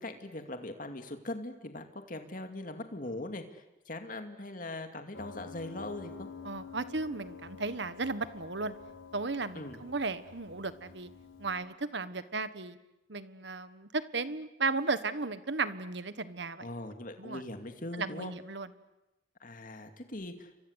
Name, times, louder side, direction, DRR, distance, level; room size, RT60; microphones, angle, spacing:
voice 1, 0.0-6.3 9.5-9.8 16.6-18.3 19.4-20.5, left 2 dB, 45° left, 6 dB, 2.5 m, -41 dB
Piano, 5.1-11.6, left 5 dB, 90° left, 5.8 m, -49 dB
voice 2, 6.4-8.7 9.1-11.1 11.4-12.8 13.1-16.7 17.2-17.4 18.0-18.7, right 3 dB, 65° right, 13 dB, 1.4 m, -35 dB
30.0 x 24.5 x 8.2 m, 0.98 s
head